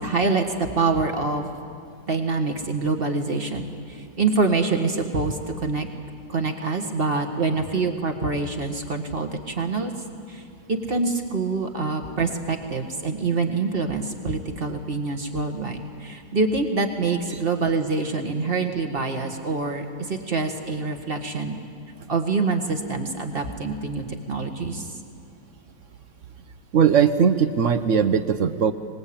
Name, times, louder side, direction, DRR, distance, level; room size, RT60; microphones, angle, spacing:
voice 1, 0.0-1.5 2.1-5.9 6.3-9.9 10.3-10.4 10.7-21.6 22.1-24.9, right 3 dB, 30° right, 4 dB, 1.9 m, -25 dB
voice 2, 26.7-28.7, right 7 dB, 55° right, 10 dB, 1.0 m, -19 dB
24.0 x 20.5 x 8.8 m, 2.3 s
omnidirectional pair, 1.9 m